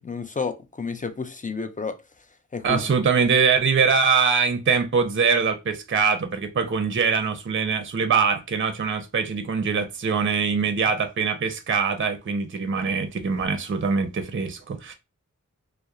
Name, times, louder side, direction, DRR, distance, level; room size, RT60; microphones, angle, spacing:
voice 1, 0.0-2.0 2.5-2.9, left 4 dB, 25° left, 0.4 m, -30 dB
voice 2, 2.6-14.9, right 5 dB, 40° right, 0.5 m, -23 dB
2.8 x 2.0 x 2.3 m
wide cardioid pair, 50°, 32 cm